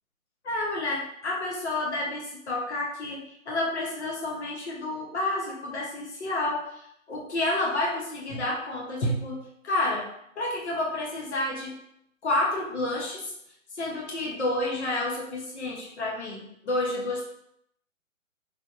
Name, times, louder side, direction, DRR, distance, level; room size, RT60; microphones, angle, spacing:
voice 1, 0.5-6.7 7.1-10.1 10.4-11.8 12.2-13.3 13.8-17.3, left 2 dB, 55° left, -2 dB, 0.8 m, -29 dB
3.4 x 2.6 x 2.4 m, 0.74 s
hypercardioid pair, 155°, 41 cm